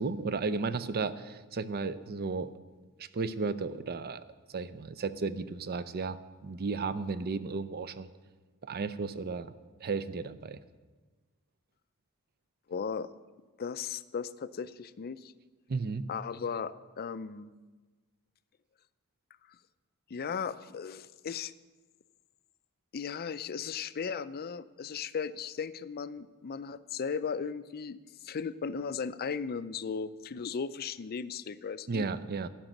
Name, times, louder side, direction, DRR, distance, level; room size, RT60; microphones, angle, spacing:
voice 1, 0.0-2.5 3.0-4.2 4.5-8.1 8.6-9.5 9.8-10.6 15.7-16.1 31.9-32.5, right 4 dB, 45° right, 13 dB, 0.5 m, -34 dB
voice 2, 12.7-13.1 13.6-15.3 16.1-17.5 20.1-21.5 22.9-28.0 28.2-32.1, left 6 dB, 45° left, 14 dB, 0.4 m, -36 dB
11.5 x 6.1 x 9.0 m, 1.3 s
head